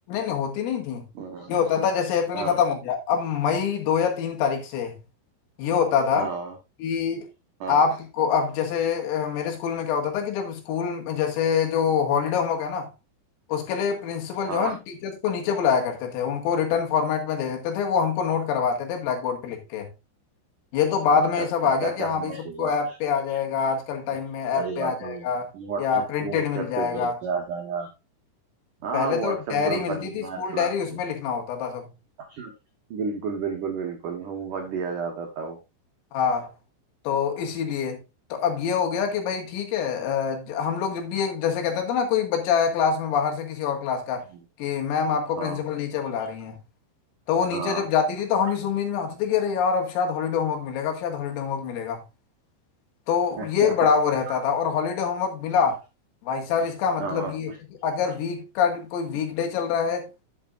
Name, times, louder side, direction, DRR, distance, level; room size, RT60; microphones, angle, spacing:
voice 1, 0.1-1.1 1.5-5.0 5.6-6.3 6.8-7.3 7.7-12.9 13.5-14.8 15.0-19.9 20.7-25.5 25.8-27.2 28.9-31.9 36.1-36.5 37.1-38.0 38.3-44.2 44.6-46.6 47.3-52.0 53.1-55.8 56.2-57.5 57.8-60.1, left 6 dB, 85° left, 4.5 m, -25 dB
voice 2, 1.1-1.5 2.3-2.6 6.1-6.6 7.6-7.8 14.5-14.8 21.1-23.0 23.3-23.4 24.6-25.3 25.5-27.9 28.8-31.0 32.2-32.5 32.9-35.6 44.3-44.4 45.4-45.6 47.5-47.9 53.4-53.7 54.3-54.4 57.0-57.6 58.1-58.2, right 5 dB, 80° right, 1.8 m, -32 dB
11.5 x 8.2 x 2.5 m
omnidirectional pair, 5.9 m